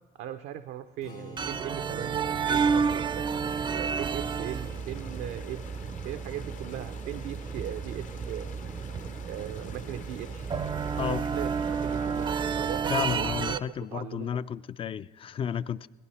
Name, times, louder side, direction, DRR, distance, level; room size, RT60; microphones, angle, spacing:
voice 1, 0.2-3.3 3.7-5.6 6.0-8.5 9.1-10.5 11.0-14.4, right 11 dB, 80° right, 0.5 m, -39 dB
Strum, 1.0-7.3, left 4 dB, 90° left, 2.4 m, -52 dB
sound 1, 1.4-13.6, right 6 dB, 30° right, 0.4 m, -31 dB
sound 2, 3.4-12.8, left 7 dB, 50° left, 0.7 m, -49 dB
voice 2, 12.9-15.9, left 8 dB, 35° left, 0.3 m, -32 dB
17.5 x 12.5 x 4.2 m
cardioid pair, 110°, 17 cm